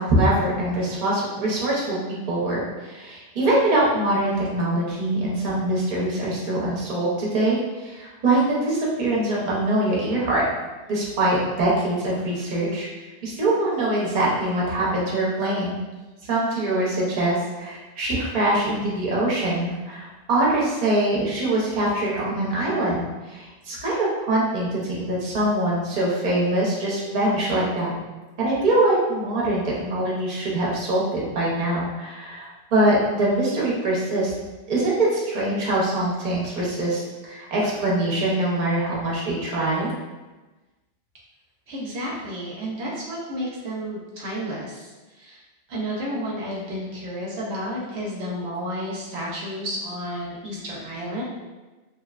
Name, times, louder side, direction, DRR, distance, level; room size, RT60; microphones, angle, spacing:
voice 1, 0.0-10.4 10.9-15.8 16.3-27.9 28.4-34.3 34.7-39.9, right 1 dB, 50° right, -5 dB, 0.8 m, -23 dB
voice 2, 41.7-44.9 45.2-45.4 45.7-51.2, equal, 75° right, -4 dB, 0.9 m, -31 dB
2.8 x 2.1 x 2.3 m, 1.2 s
omnidirectional pair, 1.1 m